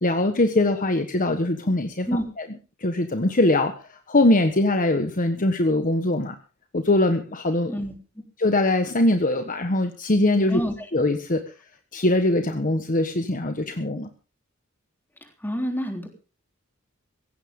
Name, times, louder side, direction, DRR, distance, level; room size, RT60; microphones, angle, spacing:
voice 1, 0.0-2.1 2.4-2.5 2.8-3.8 4.1-6.4 6.7-7.8 8.4-10.6 10.9-11.4 11.9-14.1, left 2 dB, 40° left, 7 dB, 1.3 m, -22 dB
voice 2, 15.4-16.1, equal, 10° left, 4 dB, 3.5 m, -27 dB
17.0 x 16.0 x 3.7 m, 0.35 s
head